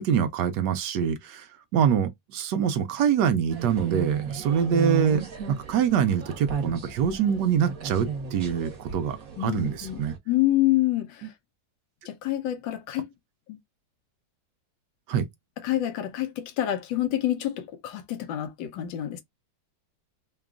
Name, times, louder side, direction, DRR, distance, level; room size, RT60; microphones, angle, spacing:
voice 1, 0.0-1.5 1.7-10.1 15.1-15.3, right 8 dB, 70° right, 1.3 m, -25 dB
sound 1, 3.5-10.2, right 6 dB, 50° right, 1.5 m, -34 dB
voice 2, 9.4-11.3 12.0-13.1 13.5-13.6 15.6-19.2, left 14 dB, 85° left, 1.4 m, -27 dB
3.8 x 2.3 x 3.6 m
omnidirectional pair, 2.0 m